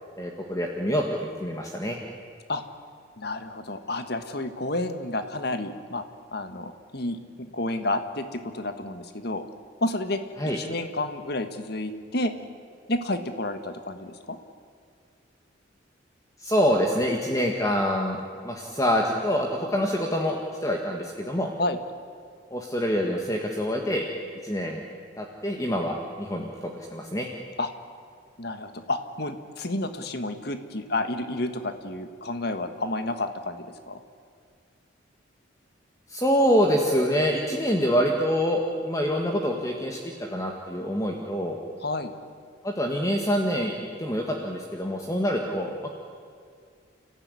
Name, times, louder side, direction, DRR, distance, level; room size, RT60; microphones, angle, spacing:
voice 1, 0.2-2.0 10.4-10.6 16.4-21.5 22.5-24.1 24.4-24.8 25.2-27.3 36.1-41.6 42.6-43.7 44.0-45.9, equal, 15° left, 1 dB, 1.8 m, -26 dB
voice 2, 3.2-6.0 6.3-9.5 9.8-10.2 10.5-12.3 12.9-14.4 21.6-21.8 27.6-27.7 28.4-34.0 41.8-42.1, left 2 dB, 55° left, 8 dB, 1.6 m, -30 dB
29.5 x 15.0 x 9.7 m, 2.2 s
head